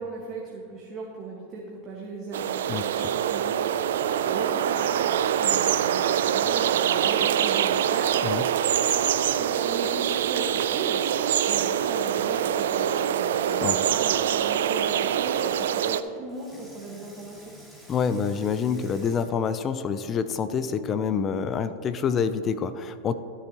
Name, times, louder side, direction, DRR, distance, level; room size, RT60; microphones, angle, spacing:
voice 1, 0.0-17.5, right 3 dB, 35° right, -3 dB, 1.6 m, -37 dB
sound 1, 2.3-16.0, right 9 dB, 75° right, 0.4 m, -24 dB
voice 2, 2.7-3.1 8.2-8.4 13.6-13.8 17.9-23.1, left 6 dB, 35° left, 12 dB, 0.5 m, -27 dB
Water tap faucet / Sink (filling or washing), 13.3-14.0 16.3-20.2 20.9-21.0, equal, 5° left, 2.1 m, -51 dB
14.0 x 6.9 x 2.9 m, 2.6 s
hypercardioid pair, 105°, 0 cm